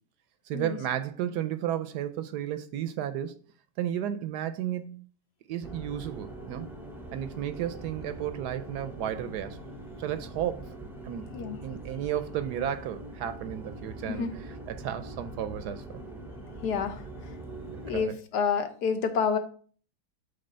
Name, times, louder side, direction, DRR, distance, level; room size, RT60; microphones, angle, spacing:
voice 1, 0.4-3.4 3.8-5.1 5.5-6.7 7.1-9.7 10.0-10.7 11.0-11.4 11.6-14.3 14.7-16.0 17.7-18.2, right 10 dB, 75° right, 1.0 m, -33 dB
sound 1, 5.6-18.1, right 2 dB, 5° right, 0.4 m, -43 dB
voice 2, 16.6-17.0 17.8-19.4, left 6 dB, 70° left, 1.4 m, -28 dB
7.9 x 3.3 x 5.5 m
omnidirectional pair, 1.9 m